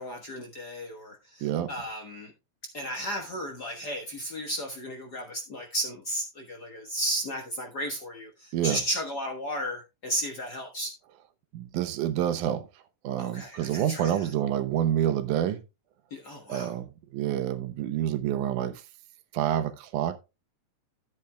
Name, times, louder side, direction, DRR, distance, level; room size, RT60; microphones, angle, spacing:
voice 1, 0.0-2.3 2.7-10.9 13.2-14.3 16.1-16.8, equal, 50° left, 1.3 m, -34 dB
voice 2, 1.4-1.7 8.5-8.8 11.5-12.7 13.0-15.6 16.5-18.8 19.3-20.2, right 11 dB, 90° right, 2.4 m, -28 dB
13.0 x 8.5 x 2.2 m
omnidirectional pair, 3.4 m